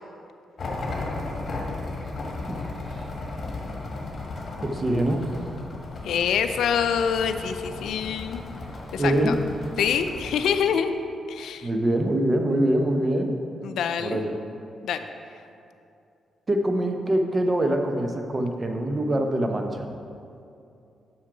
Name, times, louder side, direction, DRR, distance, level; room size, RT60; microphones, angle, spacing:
sound 1, 0.6-10.6, left 2 dB, 50° left, 1.5 m, -35 dB
voice 1, 4.6-5.2 9.0-9.3 11.6-13.3 14.0-14.4 16.5-19.8, right 1 dB, 35° right, 4 dB, 0.9 m, -24 dB
voice 2, 6.0-8.4 8.9-9.3 9.8-10.9 11.3-11.7 13.6-14.2 14.8-15.0, left 7 dB, 75° left, 9 dB, 0.4 m, -25 dB
7.4 x 6.3 x 4.8 m, 2.6 s
supercardioid pair, 50°, 0 cm